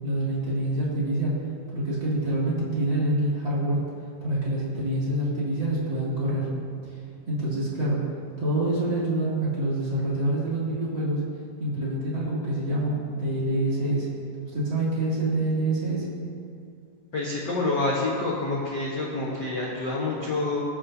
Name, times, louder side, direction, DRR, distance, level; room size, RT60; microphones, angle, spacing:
voice 1, 0.0-1.3 1.7-3.8 4.2-6.5 6.9-7.0 7.3-8.0 8.4-11.2 11.6-14.1 14.5-16.0, right 1 dB, 35° right, -8 dB, 3.0 m, -26 dB
voice 2, 17.1-20.6, left 2 dB, 60° left, -5 dB, 1.1 m, -27 dB
23.0 x 8.6 x 2.8 m, 2.4 s
omnidirectional pair, 4.0 m